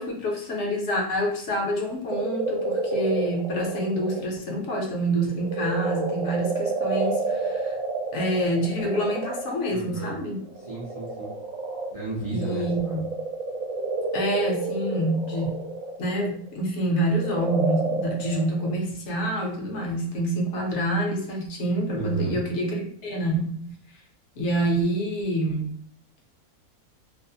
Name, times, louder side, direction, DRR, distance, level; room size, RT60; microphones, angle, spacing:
voice 1, 0.0-7.8 8.1-10.4 12.3-13.0 14.1-15.6 16.0-23.7 24.4-25.7, right 1 dB, 60° left, 0 dB, 0.9 m, -27 dB
sound 1, 2.1-4.2 4.7-9.6 10.4-16.6 17.1-18.7, right 3 dB, 70° right, 1.0 m, -29 dB
voice 2, 9.7-10.2 10.7-11.3 11.9-13.0 22.0-22.4, right 3 dB, 50° right, -7 dB, 0.4 m, -32 dB
2.6 x 2.0 x 2.7 m, 0.62 s
omnidirectional pair, 1.6 m